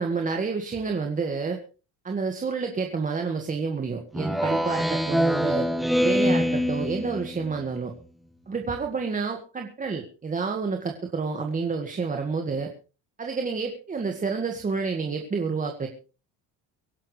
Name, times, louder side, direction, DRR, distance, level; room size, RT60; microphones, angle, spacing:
voice 1, 0.0-1.6 2.0-5.7 6.0-7.9 8.5-12.7 13.2-15.9, right 4 dB, 20° right, 3 dB, 1.8 m, -29 dB
Speech synthesizer, 4.1-7.7, equal, ahead, 1.1 m, -25 dB
23.5 x 11.5 x 3.3 m, 0.35 s
cardioid pair, 140°, 36 cm